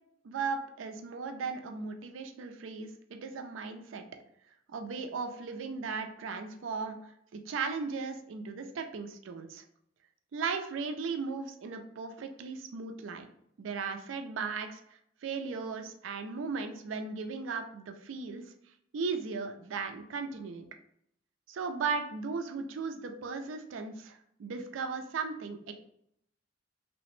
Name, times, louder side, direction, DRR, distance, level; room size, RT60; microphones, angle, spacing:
voice 1, 0.2-4.1 4.7-9.6 10.3-13.3 13.6-14.8 15.2-18.4 18.9-20.7 21.5-25.7, right 4 dB, 90° right, 6 dB, 0.4 m, -37 dB
2.8 x 2.0 x 3.1 m, 0.72 s
head